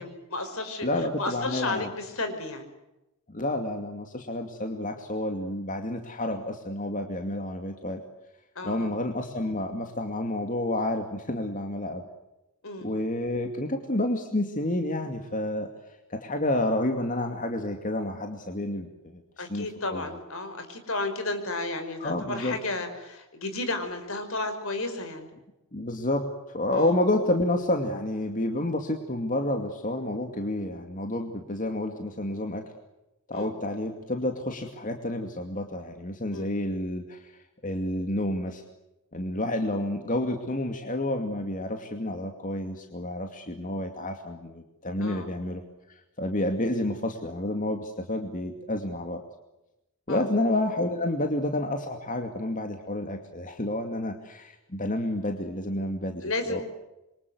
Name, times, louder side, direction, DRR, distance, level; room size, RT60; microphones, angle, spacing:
voice 1, 0.0-0.9 1.2-2.7 8.6-8.9 12.6-12.9 19.4-25.3 26.7-26.9 33.3-33.5 36.3-36.5 45.0-45.3 50.1-50.3 56.2-56.6, left 2 dB, 65° left, 8 dB, 5.3 m, -33 dB
voice 2, 0.8-1.9 3.3-8.0 8.6-12.1 12.8-15.7 16.1-19.2 19.5-20.0 22.0-22.6 25.7-32.6 33.3-37.2 37.6-38.6 39.1-45.6 46.2-49.2 50.1-56.6, left 1 dB, 35° left, 4 dB, 2.5 m, -29 dB
27.5 x 24.5 x 8.0 m, 0.94 s
head